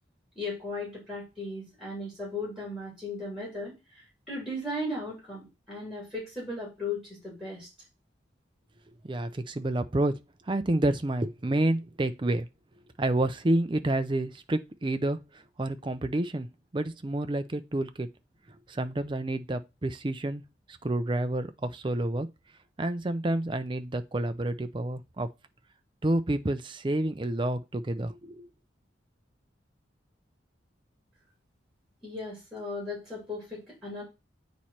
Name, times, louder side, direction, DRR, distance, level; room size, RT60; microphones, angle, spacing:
voice 1, 0.3-7.7 32.0-34.0, left 2 dB, ahead, 3.4 m, -37 dB
voice 2, 9.0-10.2 10.5-12.5 13.0-15.2 15.6-16.5 16.7-18.1 18.7-20.4 20.8-22.3 22.8-25.3 26.0-28.5, right 1 dB, 25° right, 0.5 m, -29 dB
8.8 x 3.1 x 4.3 m
head